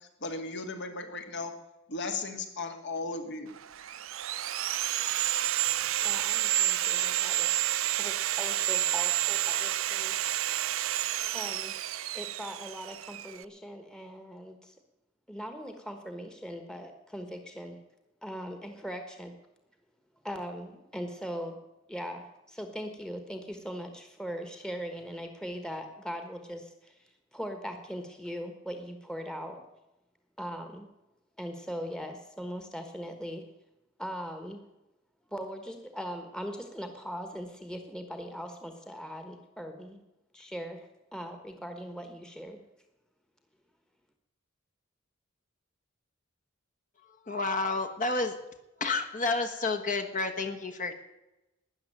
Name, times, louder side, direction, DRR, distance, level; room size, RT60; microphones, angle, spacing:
voice 1, 0.2-1.5 1.9-3.5, left 3 dB, 60° left, 6 dB, 2.1 m, -36 dB
Sawing, 3.6-13.4, right 13 dB, 80° right, 0.6 m, -30 dB
voice 2, 6.0-10.1 11.3-11.8 12.1-14.7 15.3-17.8 18.2-19.3 20.2-21.6 21.9-29.6 30.4-30.9 31.4-33.4 34.0-34.6 35.3-40.0 40.3-42.6, equal, 5° left, 6 dB, 1.3 m, -40 dB
voice 3, 47.3-48.3 48.8-51.0, left 3 dB, 40° left, 6 dB, 1.3 m, -30 dB
13.0 x 9.7 x 9.0 m, 0.97 s
head